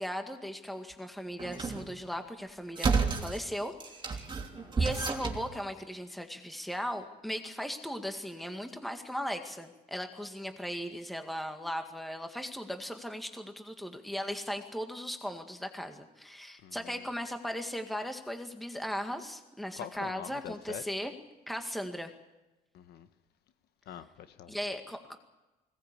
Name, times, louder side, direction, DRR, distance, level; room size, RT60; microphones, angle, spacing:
voice 1, 0.0-3.7 4.0-4.4 4.8-21.1 21.5-22.1 24.5-25.2, equal, ahead, 1.9 m, -37 dB
sound 1, 1.4-1.9 2.8-3.4 3.8-5.5, right 4 dB, 30° right, 3.2 m, -31 dB
voice 2, 4.4-4.7 16.6-16.8 19.8-20.8 22.7-23.1 23.9-24.5, left 9 dB, 70° left, 1.3 m, -44 dB
21.0 x 18.5 x 8.4 m
cardioid pair, 110°, 17 cm